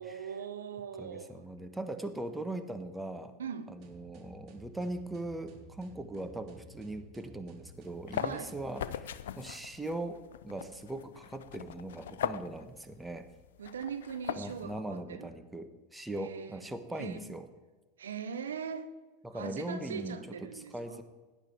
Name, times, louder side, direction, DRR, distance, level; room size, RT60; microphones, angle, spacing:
voice 1, 0.0-1.4 3.4-3.7 8.1-8.5 13.6-15.3 16.2-16.6 16.9-17.3 18.0-18.9 19.3-21.0, right 7 dB, 80° right, 1.3 m, -41 dB
voice 2, 1.0-3.3 3.7-10.2 10.4-13.3 14.3-17.5 19.2-21.0, right 2 dB, 10° right, 1.4 m, -40 dB
sound 1, 3.8-9.1, right 2 dB, 50° right, 3.0 m, -54 dB
sound 2, 7.7-14.8, left 9 dB, 75° left, 0.7 m, -40 dB
17.0 x 11.0 x 4.6 m
hypercardioid pair, 85°, 0 cm